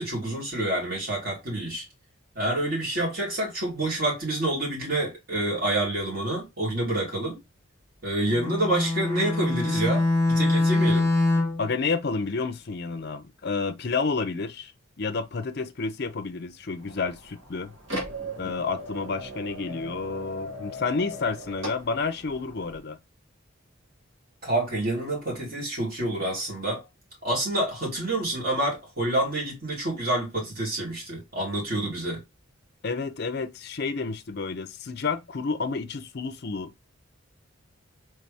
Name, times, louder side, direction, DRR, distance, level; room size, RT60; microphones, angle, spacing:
voice 1, 0.0-1.8 2.3-7.4 8.0-11.1 24.4-26.8 27.2-32.2, right 1 dB, 45° right, 2.8 m, -28 dB
Bowed string instrument, 8.3-11.7, left 2 dB, 10° left, 0.8 m, -24 dB
voice 2, 11.6-14.7 15.0-17.7 18.4-23.0 32.8-36.7, left 4 dB, 50° left, 0.5 m, -30 dB
sound 1, 16.8-22.8, equal, 65° right, 2.0 m, -38 dB
4.1 x 3.4 x 3.4 m
head